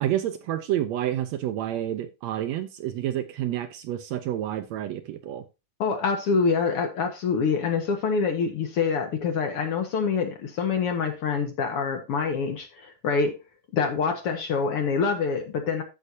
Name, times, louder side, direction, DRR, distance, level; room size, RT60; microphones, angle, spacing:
voice 1, 0.0-5.4, right 12 dB, 75° right, 1.8 m, -29 dB
voice 2, 5.8-13.4 13.7-15.8, left 5 dB, 55° left, 1.9 m, -26 dB
14.5 x 5.5 x 2.7 m
omnidirectional pair, 3.5 m